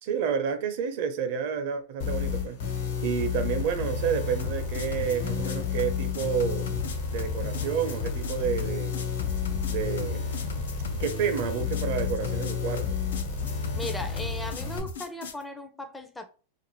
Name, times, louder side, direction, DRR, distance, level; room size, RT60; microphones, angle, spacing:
voice 1, 0.0-2.6 3.0-6.7 7.1-9.1 9.7-10.2 11.0-13.0, right 7 dB, 60° right, 0.7 m, -30 dB
sound 1, 2.0-14.8, left 6 dB, 65° left, 1.1 m, -31 dB
sound 2, 4.4-15.4, left 3 dB, 85° left, 0.5 m, -38 dB
voice 2, 13.7-16.2, left 1 dB, 10° left, 0.5 m, -37 dB
2.5 x 2.5 x 3.0 m
hypercardioid pair, 120°, 0 cm